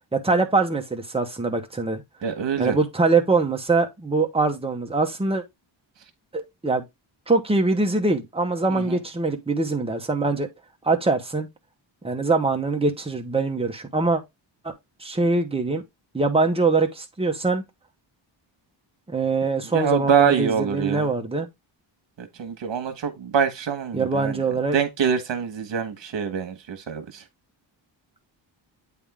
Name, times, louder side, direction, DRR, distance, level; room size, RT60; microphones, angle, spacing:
voice 1, 0.1-2.0 2.6-5.4 6.3-6.8 7.3-10.5 10.8-11.5 12.0-14.2 14.6-14.7 15.0-15.8 16.1-17.6 19.1-21.5 23.9-24.8, right 3 dB, 10° right, 0.9 m, -23 dB
voice 2, 2.2-2.8 8.7-9.0 19.6-21.1 22.2-24.4 24.7-27.2, right 7 dB, 70° right, 1.3 m, -25 dB
8.4 x 3.6 x 3.5 m
wide cardioid pair, 175°, 46 cm